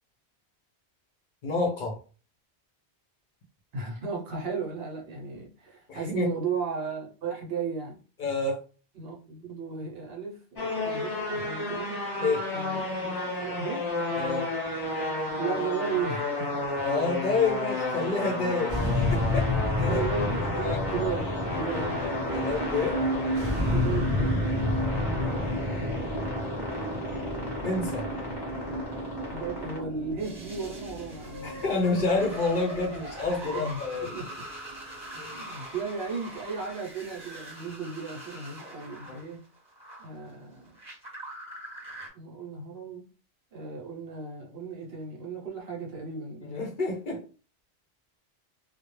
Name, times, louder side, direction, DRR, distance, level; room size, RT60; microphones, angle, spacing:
voice 1, 1.4-2.0 5.9-6.3 8.2-8.6 12.2-12.5 14.2-14.5 16.8-18.8 19.1-19.5 19.8-20.0 20.5-20.8 22.3-23.0 25.4-25.9 27.6-28.1 31.4-34.2 35.1-35.4 39.1-39.2 46.5-47.2, left 3 dB, 55° left, 0.6 m, -29 dB
voice 2, 3.7-8.0 8.9-12.0 12.5-13.1 13.4-13.9 15.4-16.6 19.9-22.0 23.6-24.7 29.3-31.7 33.4-34.4 35.3-39.4 40.0-40.8 42.1-43.1 43.5-46.7, right 5 dB, 65° right, 0.9 m, -35 dB
sound 1, 10.6-29.8, left 2 dB, 20° left, 0.9 m, -33 dB
sound 2, 18.7-35.1, left 1 dB, 35° right, 0.5 m, -30 dB
sound 3, 30.2-40.1 40.7-42.1, right 1 dB, 5° right, 0.8 m, -42 dB
2.3 x 2.0 x 3.0 m
omnidirectional pair, 1.1 m